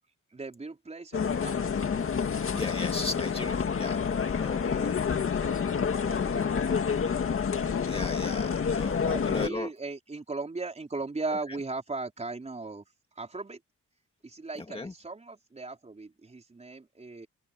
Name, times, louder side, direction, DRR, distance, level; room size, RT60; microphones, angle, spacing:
voice 1, 0.3-1.9 3.4-3.5 4.7-4.8 5.3-7.3 7.6-7.8 9.0-12.8 13.2-13.6 14.2-17.3, right 3 dB, 20° right, 4.6 m, -38 dB
sound 1, 1.1-9.5, left 6 dB, 45° left, 2.1 m, -28 dB
voice 2, 2.5-4.0 4.3-4.9 5.3-5.4 7.9-9.0 9.2-9.7 14.7-14.9, left 2 dB, 20° left, 1.9 m, -36 dB
wide cardioid pair, 150°, 29 cm